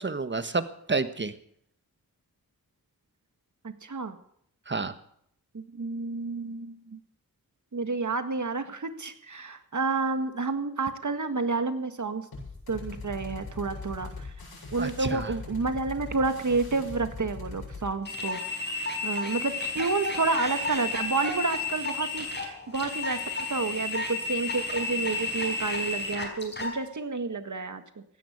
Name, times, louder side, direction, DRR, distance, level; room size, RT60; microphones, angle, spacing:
voice 1, 0.0-1.3 4.7-4.9 14.8-15.3, right 4 dB, 30° right, 11 dB, 1.4 m, -30 dB
voice 2, 3.6-4.2 5.5-7.0 7.7-12.3 12.7-14.3 14.7-28.0, right 4 dB, 55° right, 9 dB, 1.8 m, -30 dB
sound 1, 12.3-17.9, left 3 dB, 85° left, 7.9 m, -41 dB
sound 2, 18.0-26.7, left 3 dB, 30° left, 5.3 m, -32 dB
16.5 x 10.5 x 8.1 m, 0.68 s
cardioid pair, 65°, 37 cm